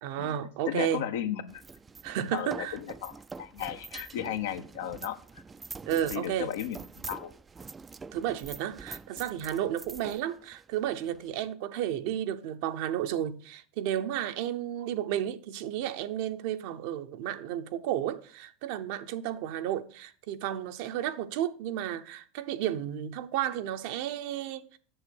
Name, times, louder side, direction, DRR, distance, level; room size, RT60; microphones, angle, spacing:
voice 1, 0.0-1.0 2.0-2.8 5.9-6.5 8.1-24.8, right 11 dB, 65° right, 0.7 m, -32 dB
voice 2, 0.7-1.6 2.3-5.4 6.1-6.8 7.1-7.3, left 10 dB, 80° left, 0.9 m, -35 dB
sound 1, 1.5-11.5, right 4 dB, 20° right, 0.4 m, -45 dB
7.8 x 6.6 x 6.3 m
hypercardioid pair, 100°, 0 cm